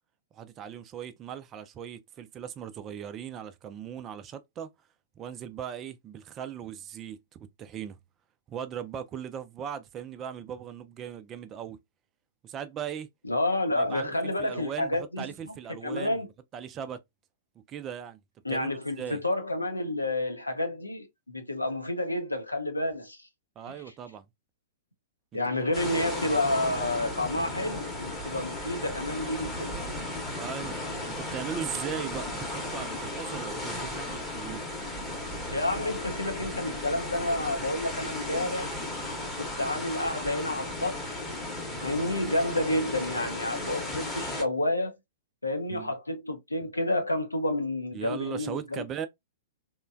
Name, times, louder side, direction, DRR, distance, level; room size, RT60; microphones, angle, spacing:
voice 1, 0.3-4.7 5.2-8.0 8.5-11.8 12.4-13.1 13.7-16.3 16.5-17.0 17.7-18.2 18.5-19.2 23.6-24.3 25.3-25.7 30.3-30.8 31.0-34.6 45.7-45.9 47.9-49.1, right 8 dB, 25° right, 0.3 m, -38 dB
voice 2, 13.2-15.5 15.8-16.3 18.4-23.3 25.3-29.7 35.5-38.7 39.4-41.0 41.8-45.0 45.4-48.8, left 1 dB, 85° left, 0.6 m, -30 dB
sound 1, 25.7-44.4, left 1 dB, 5° left, 0.8 m, -35 dB
3.0 x 2.1 x 2.3 m
figure-of-eight pair, 105°, 0 cm